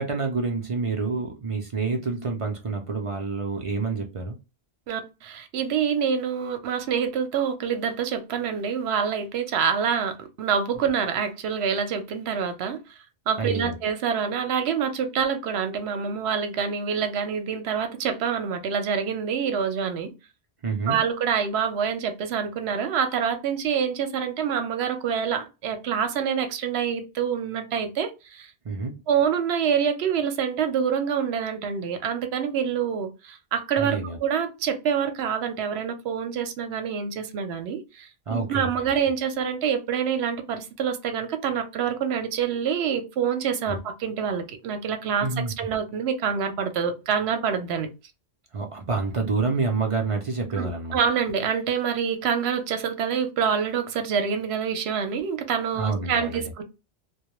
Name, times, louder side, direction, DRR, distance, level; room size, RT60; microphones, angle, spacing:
voice 1, 0.0-4.4 13.4-13.7 20.6-21.0 28.6-28.9 33.8-34.2 38.3-38.7 43.7-43.8 45.2-45.5 48.5-51.0 55.8-56.4, right 4 dB, 45° right, 0.4 m, -28 dB
voice 2, 4.9-13.0 13.3-20.1 20.9-28.5 29.1-47.9 50.6-56.6, right 7 dB, 80° right, 0.8 m, -26 dB
2.2 x 2.1 x 2.9 m
omnidirectional pair, 1.1 m